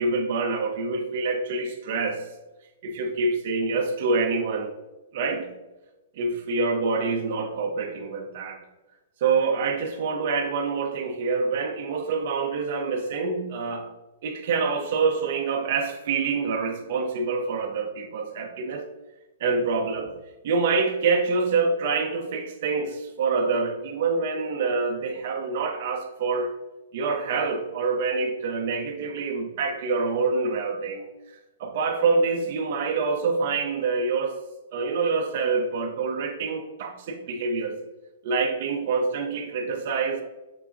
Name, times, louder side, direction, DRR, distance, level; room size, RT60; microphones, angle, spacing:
voice 1, 0.0-2.3 2.8-4.7 5.1-5.5 6.1-8.6 9.2-13.9 14.2-18.9 19.4-20.2 20.4-26.6 26.9-31.1 31.6-34.4 34.7-37.8 38.2-40.2, right 4 dB, 50° right, 3 dB, 0.6 m, -26 dB
6.0 x 3.5 x 2.6 m, 1.1 s
hypercardioid pair, 155°, 0 cm